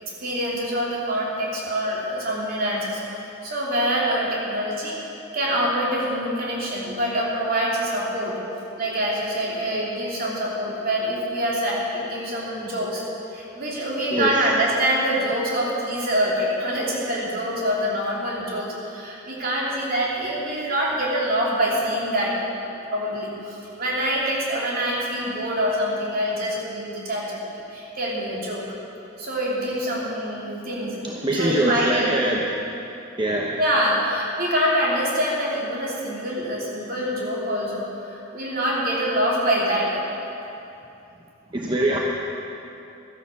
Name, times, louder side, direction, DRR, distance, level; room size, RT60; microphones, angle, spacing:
voice 1, 0.2-3.0 3.4-5.0 5.3-8.4 8.8-13.0 13.3-27.4 27.7-28.7 29.2-31.0 31.3-32.2 33.6-40.1, equal, 50° right, -4 dB, 3.3 m, -25 dB
voice 2, 31.0-32.4 33.2-33.6 41.5-42.0, right 1 dB, 25° right, -2 dB, 0.9 m, -23 dB
12.5 x 11.0 x 7.1 m, 2.8 s
head